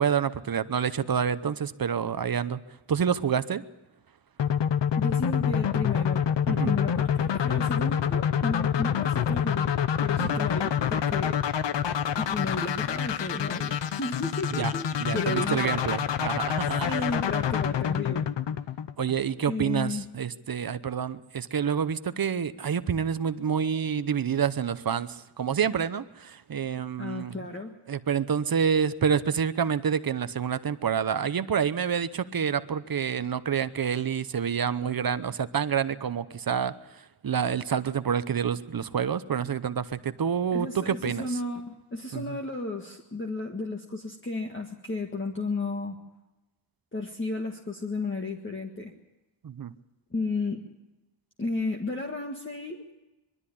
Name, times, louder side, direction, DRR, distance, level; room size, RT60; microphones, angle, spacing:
voice 1, 0.0-2.6 2.9-3.6 6.5-6.8 10.2-10.4 14.5-14.7 15.0-17.0 19.0-27.4 27.9-41.4 42.1-42.4 49.4-49.7, right 7 dB, 50° right, 13 dB, 0.9 m, -28 dB
sound 1, 4.4-19.3, left 8 dB, 65° left, 0.8 m, -27 dB
voice 2, 5.0-9.7 10.0-11.4 12.2-15.9 16.8-18.3 19.5-20.1 27.0-27.8 40.5-46.0 46.9-48.9 50.1-50.6 51.4-52.9, left 3 dB, 25° left, 1 dB, 1.7 m, -33 dB
22.5 x 13.0 x 10.0 m, 1.0 s
wide cardioid pair, 110°, 47 cm